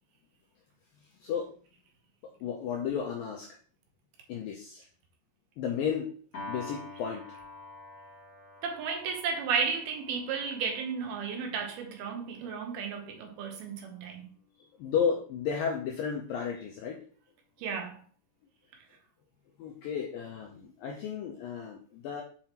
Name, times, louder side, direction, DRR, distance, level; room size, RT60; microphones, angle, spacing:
voice 1, 1.2-1.5 2.4-3.6 4.3-4.9 5.6-6.1 6.5-7.2 14.8-17.1 19.6-22.2, left 7 dB, 85° left, 2.0 m, -33 dB
Piano, 6.3-12.7, left 2 dB, 40° left, 3.0 m, -47 dB
voice 2, 8.6-14.3 17.6-18.0, right 5 dB, 75° right, 2.7 m, -33 dB
7.4 x 4.9 x 2.9 m
omnidirectional pair, 4.8 m